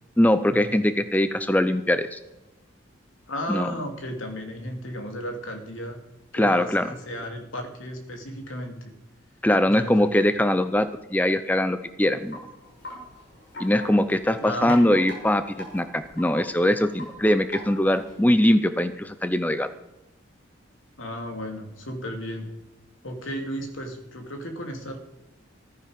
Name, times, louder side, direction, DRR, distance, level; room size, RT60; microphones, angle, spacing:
voice 1, 0.2-2.2 3.5-3.7 6.3-6.9 9.4-12.4 13.6-15.4 15.7-19.7, left 1 dB, 10° left, 11 dB, 0.5 m, -22 dB
voice 2, 3.3-6.0 6.3-8.9 9.7-10.1 14.3-14.7 21.0-22.5 23.0-25.0, equal, 85° left, 3 dB, 2.8 m, -34 dB
Wind chime, 12.0-18.2, left 1 dB, 55° left, 6.2 m, -42 dB
15.0 x 12.5 x 5.2 m, 1.0 s
head